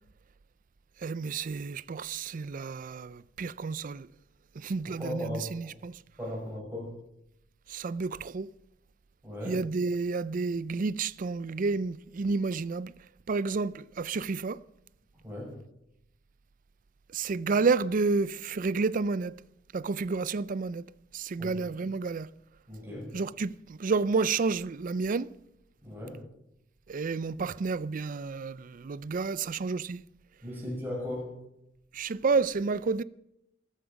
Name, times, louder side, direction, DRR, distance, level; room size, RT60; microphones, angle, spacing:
voice 1, 1.0-4.1 4.5-6.0 7.7-8.5 9.4-12.9 13.3-14.6 17.1-19.3 19.7-20.9 21.1-22.3 23.1-25.3 26.9-30.0 31.9-33.0, right 4 dB, 45° right, 0.4 m, -30 dB
voice 2, 4.8-5.7 6.2-6.9 9.2-9.6 15.2-15.6 21.4-21.5 22.7-23.1 25.8-26.2 30.4-31.4, left 1 dB, 10° right, 6.7 m, -37 dB
14.0 x 13.5 x 5.2 m
head